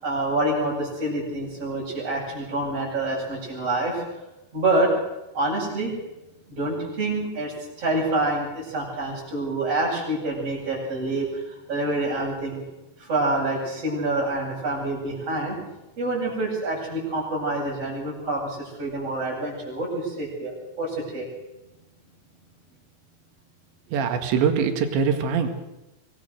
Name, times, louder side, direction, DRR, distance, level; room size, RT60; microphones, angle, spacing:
voice 1, 0.0-4.0 4.5-4.9 5.3-5.9 6.5-12.6 13.0-15.6 16.0-21.3, right 2 dB, 35° right, -10 dB, 8.2 m, -27 dB
voice 2, 23.9-25.5, right 6 dB, 85° right, 7 dB, 4.2 m, -23 dB
25.0 x 19.5 x 6.7 m, 0.99 s
omnidirectional pair, 5.0 m